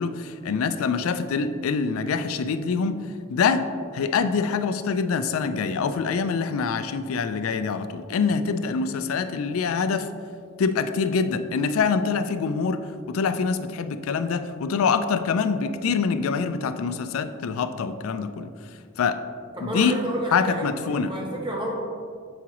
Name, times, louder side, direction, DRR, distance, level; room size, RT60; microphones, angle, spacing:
voice 1, 0.0-3.0 3.3-3.7 3.9-10.1 10.6-18.5 19.0-19.2 19.6-19.9 20.3-21.1, left 5 dB, 90° left, 10 dB, 0.4 m, -25 dB
voice 2, 19.5-21.7, right 1 dB, 25° right, -1 dB, 0.9 m, -30 dB
7.1 x 4.7 x 3.0 m, 2.2 s
head